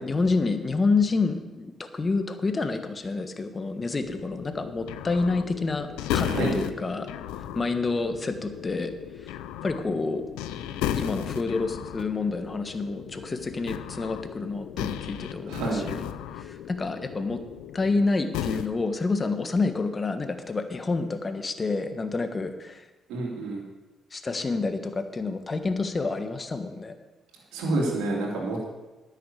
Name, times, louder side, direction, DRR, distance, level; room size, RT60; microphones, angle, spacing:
voice 1, 0.0-7.1 7.5-8.9 9.2-9.3 9.6-10.2 10.9-17.4 17.7-22.9 24.1-26.9, left 3 dB, 35° left, 8 dB, 1.5 m, -28 dB
sound 1, 4.0-18.1 18.3-18.7, left 11 dB, 80° left, 0.5 m, -35 dB
voice 2, 15.5-15.9 23.1-23.6 27.5-28.7, right 2 dB, 80° right, -2 dB, 2.8 m, -28 dB
10.5 x 6.6 x 8.6 m, 1.1 s
hypercardioid pair, 50°, 0 cm